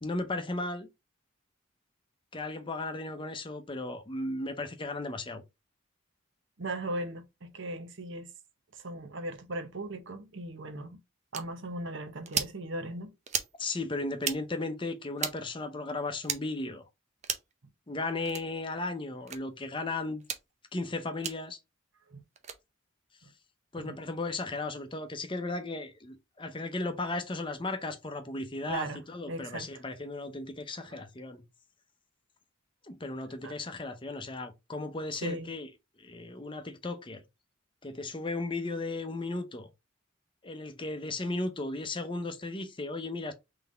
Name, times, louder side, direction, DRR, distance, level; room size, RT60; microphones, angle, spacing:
voice 1, 0.0-0.9 2.3-5.4 13.6-16.8 17.9-20.2 20.7-21.6 23.7-31.4 32.9-35.7 36.0-37.2 37.8-39.7 40.4-43.3, left 2 dB, 25° left, 0.7 m, -35 dB
voice 2, 6.6-8.3 8.7-11.0 11.3-13.1 22.1-22.2 23.8-23.9 28.7-29.0 29.3-29.7 30.9-31.0 33.4-33.5 35.2-35.5, right 1 dB, 60° right, 0.9 m, -38 dB
sound 1, 11.3-11.4 12.3-12.5 13.3-13.5 14.2-14.4 15.2-15.4 16.2-16.4 17.2-17.5 18.3-18.4 19.3-19.4 20.2-20.4 21.2-21.4 22.4-22.6, right 7 dB, 35° right, 0.7 m, -33 dB
3.9 x 3.4 x 3.9 m
head